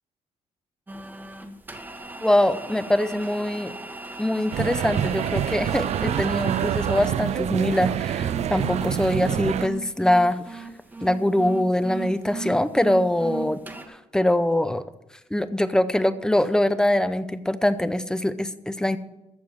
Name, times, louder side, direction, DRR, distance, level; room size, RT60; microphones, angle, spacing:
sound 1, 0.9-13.9, right 3 dB, 15° right, 1.3 m, -37 dB
voice 1, 2.2-3.7 4.2-10.6 11.0-13.6 13.9-14.8 15.3-19.0, left 1 dB, 5° left, 12 dB, 0.6 m, -23 dB
sound 2, 4.5-9.7, right 10 dB, 60° right, 0.4 m, -26 dB
14.5 x 4.8 x 9.0 m, 0.94 s
cardioid pair, 120°, 13 cm